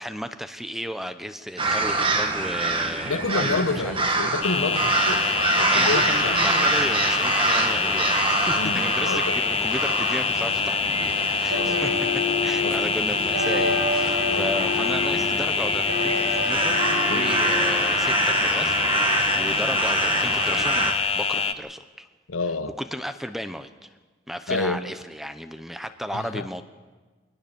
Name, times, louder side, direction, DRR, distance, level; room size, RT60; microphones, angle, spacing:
voice 1, 0.0-3.9 4.2-4.4 5.7-22.1 22.8-23.7 24.3-26.6, equal, ahead, 9 dB, 0.8 m, -34 dB
sound 1, 1.6-20.9, right 2 dB, 25° right, 1.7 m, -26 dB
voice 2, 3.0-6.7 8.5-9.3 11.5-12.0 12.6-12.9 14.2-14.5 17.1-17.3 22.3-22.7 24.5-24.8 26.1-26.5, left 3 dB, 85° left, 11 dB, 1.1 m, -29 dB
sound 2, 4.4-21.5, left 5 dB, 30° left, 0.7 m, -25 dB
sound 3, 11.5-17.9, left 2 dB, 70° right, 2.7 m, -29 dB
23.0 x 19.0 x 7.0 m, 1.3 s
head